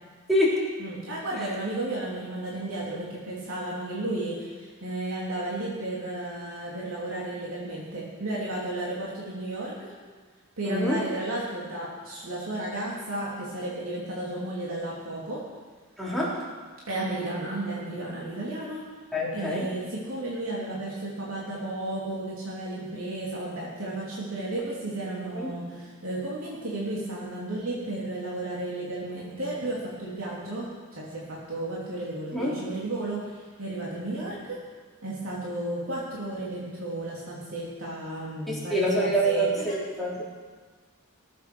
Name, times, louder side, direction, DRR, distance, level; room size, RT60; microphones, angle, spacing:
voice 1, 0.3-0.6 10.6-11.0 16.0-16.4 19.1-19.6 25.3-25.5 32.3-32.5 38.5-40.2, equal, ahead, -7 dB, 4.0 m, -26 dB
voice 2, 0.8-9.9 10.6-15.4 16.9-18.8 19.3-34.6 35.0-39.7, right 1 dB, 70° right, -6 dB, 3.3 m, -33 dB
19.5 x 8.4 x 6.4 m, 1.4 s
head